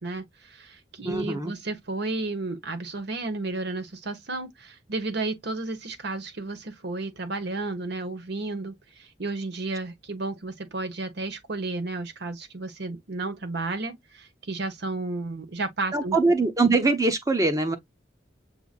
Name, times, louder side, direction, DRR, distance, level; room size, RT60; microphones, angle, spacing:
voice 1, 0.0-16.2, right 2 dB, 65° right, 1.1 m, -32 dB
voice 2, 1.0-1.5 15.9-17.8, right 3 dB, 20° right, 0.8 m, -23 dB
6.8 x 2.7 x 2.4 m
head